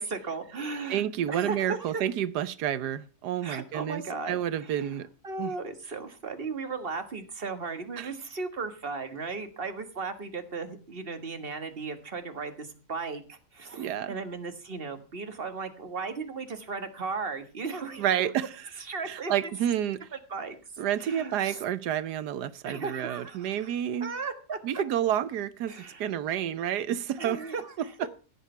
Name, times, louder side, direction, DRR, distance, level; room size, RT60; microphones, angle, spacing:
voice 1, 0.0-2.0 3.4-5.0 5.2-18.1 18.8-19.5 20.3-20.6 21.0-21.6 22.6-23.7 24.0-24.8 25.7-26.1 27.2-27.9, right 4 dB, 35° right, 1.7 m, -36 dB
voice 2, 0.9-5.1 5.4-5.5 8.0-8.1 13.7-14.1 18.0-18.7 19.0-20.1 20.8-24.1 24.6-25.7 26.0-27.4 27.8-27.9, right 10 dB, 85° right, 1.4 m, -29 dB
15.5 x 8.4 x 5.5 m
omnidirectional pair, 1.7 m